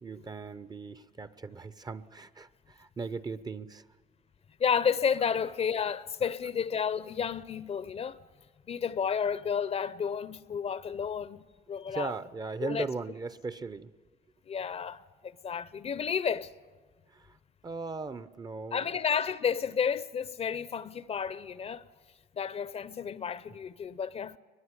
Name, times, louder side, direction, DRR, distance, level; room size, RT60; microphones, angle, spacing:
voice 1, 0.0-3.9 11.9-13.9 17.1-17.4 17.6-18.9, right 4 dB, 25° right, 0.7 m, -38 dB
voice 2, 4.6-8.2 8.7-12.1 12.6-12.9 14.5-16.5 18.7-21.8 22.4-24.4, left 7 dB, 35° left, 0.7 m, -31 dB
21.0 x 21.0 x 9.8 m
cardioid pair, 110°, 17 cm